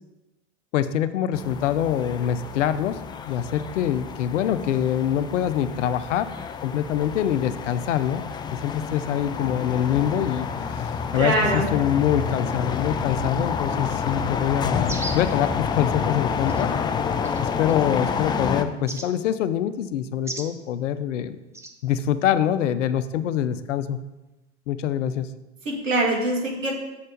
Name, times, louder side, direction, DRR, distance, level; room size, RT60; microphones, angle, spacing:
voice 1, 0.7-3.0 3.3-6.3 6.6-8.2 8.5-10.5 11.1-16.7 17.4-21.4 21.8-24.0 24.7-25.3, left 10 dB, 75° left, 12 dB, 0.7 m, -24 dB
sound 1, 1.3-18.6, left 6 dB, 15° left, 0.3 m, -29 dB
voice 2, 11.1-11.7 25.7-26.7, right 1 dB, 85° right, -1 dB, 2.1 m, -23 dB
sound 2, 14.8-15.3 16.5-16.6 17.2-17.7 18.9-19.1 20.2-20.5 21.5-21.7, right 2 dB, 5° right, 0.8 m, -34 dB
7.5 x 4.3 x 6.5 m, 1.0 s
hypercardioid pair, 90°, 37 cm